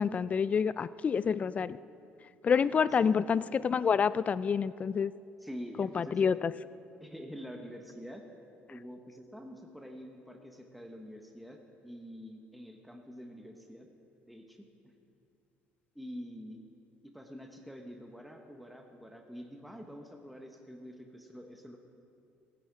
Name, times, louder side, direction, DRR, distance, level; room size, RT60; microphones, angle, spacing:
voice 1, 0.0-1.8 2.4-5.1 5.8-6.5, left 6 dB, 35° left, 17 dB, 0.3 m, -28 dB
voice 2, 2.6-2.9 5.4-6.3 7.0-8.2 8.7-13.9 14.2-14.6 15.9-16.7 17.0-21.8, equal, ahead, 3 dB, 1.1 m, -46 dB
16.0 x 9.9 x 4.8 m, 2.6 s
cardioid pair, 95°, 4 cm